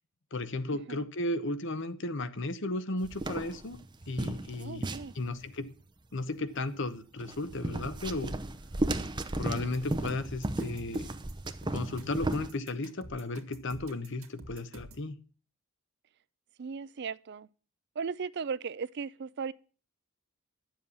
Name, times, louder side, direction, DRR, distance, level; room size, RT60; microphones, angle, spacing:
voice 1, 0.3-3.8 4.1-5.8 6.1-8.3 9.4-11.1 11.7-15.2, left 2 dB, 60° left, 1.0 m, -35 dB
sound 1, 3.0-5.5 7.2-12.5, right 1 dB, 20° right, 0.7 m, -35 dB
voice 2, 4.6-5.1 9.5-9.7 16.6-17.5 18.0-19.5, right 5 dB, 55° right, 0.5 m, -37 dB
sound 2, 9.6-15.1, right 1 dB, 90° right, 1.9 m, -49 dB
11.0 x 7.5 x 7.1 m
head